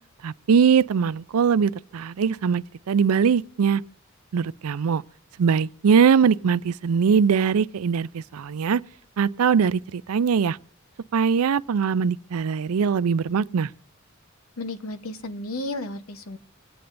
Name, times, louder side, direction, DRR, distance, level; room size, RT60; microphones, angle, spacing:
voice 1, 0.2-3.8 4.3-5.0 5.4-8.8 9.2-10.6 11.1-13.7, right 6 dB, 90° right, 0.4 m, -21 dB
voice 2, 14.6-16.4, left 2 dB, 80° left, 0.9 m, -33 dB
26.0 x 8.6 x 2.5 m
head